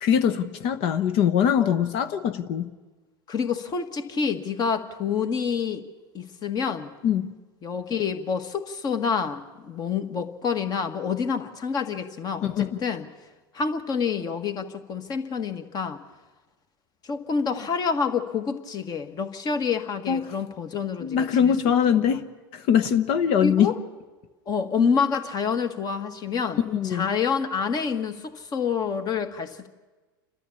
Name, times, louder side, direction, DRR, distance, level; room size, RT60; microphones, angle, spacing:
voice 1, 0.0-2.7 7.0-7.3 12.4-12.7 20.1-20.2 21.0-22.2 22.5-23.7 26.7-27.1, left 8 dB, 55° left, 10 dB, 1.0 m, -22 dB
voice 2, 3.3-5.8 6.1-6.9 7.6-13.1 13.5-16.0 17.0-21.5 21.9-22.0 23.4-23.8 24.5-29.7, left 6 dB, 35° left, 8 dB, 1.7 m, -28 dB
30.0 x 13.0 x 7.1 m, 1.3 s
hypercardioid pair, 85°, 12 cm